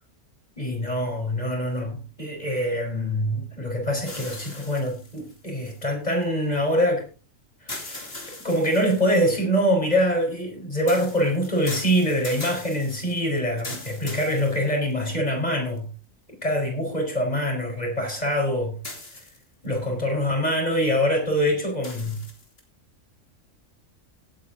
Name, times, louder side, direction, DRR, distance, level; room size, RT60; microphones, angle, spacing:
voice 1, 0.6-7.1 7.6-8.1 8.4-15.9 16.4-18.8 19.6-22.2, equal, 30° left, 1 dB, 4.9 m, -24 dB
sound 1, 4.0-6.2 7.7-9.3 10.9-15.1 15.8-15.9 18.8-19.7 21.8-22.6, left 2 dB, 50° left, 3.0 m, -40 dB
17.5 x 8.7 x 3.8 m, 0.33 s
omnidirectional pair, 1.4 m